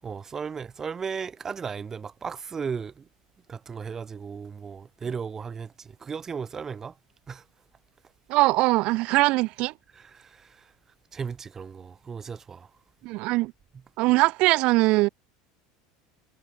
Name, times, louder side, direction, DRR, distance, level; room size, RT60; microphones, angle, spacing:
voice 1, 0.0-3.1 3.5-7.0 7.3-7.4 9.9-10.7 11.1-12.7, right 6 dB, 20° right, 6.2 m, -36 dB
voice 2, 8.3-9.7 13.0-13.5 14.0-15.1, right 21 dB, 50° right, 3.8 m, -21 dB
supercardioid pair, 150°, 2 cm